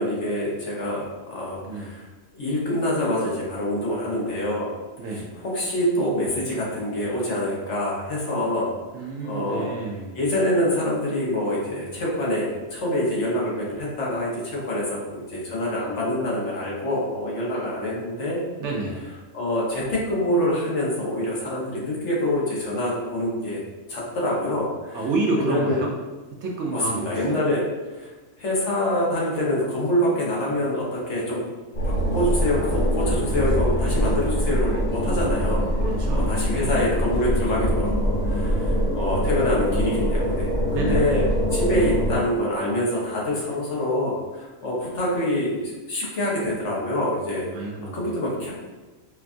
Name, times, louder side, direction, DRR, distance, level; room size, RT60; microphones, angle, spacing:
voice 1, 0.0-2.0 2.3-4.7 5.4-9.7 10.1-18.4 19.3-23.6 23.9-25.0 25.3-25.8 26.7-27.6 27.9-28.1 28.4-31.4 31.8-35.7 36.1-41.2 41.5-47.5 47.9-48.5, left 1 dB, 60° left, -4 dB, 1.2 m, -26 dB
voice 2, 1.6-2.0 5.0-5.3 8.9-10.2 18.6-19.0 24.9-25.9 26.4-27.4 35.8-36.8 40.7-41.1 47.5-48.1, right 2 dB, 65° right, 0 dB, 0.8 m, -29 dB
sound 1, 31.7-42.2, equal, 45° left, 1.6 m, -23 dB
4.5 x 2.3 x 2.5 m, 1.2 s
omnidirectional pair, 1.4 m